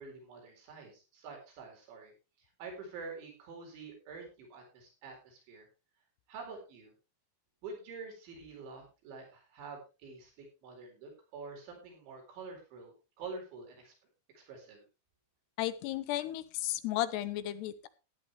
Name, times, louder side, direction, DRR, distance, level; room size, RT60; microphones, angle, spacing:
voice 1, 0.0-2.1 2.4-5.7 6.3-6.9 7.6-13.9 14.3-14.8, right 4 dB, 80° right, 1 dB, 6.5 m, -47 dB
voice 2, 15.6-17.9, left 14 dB, 75° left, 14 dB, 2.7 m, -34 dB
14.5 x 11.0 x 3.4 m, 0.30 s
omnidirectional pair, 5.2 m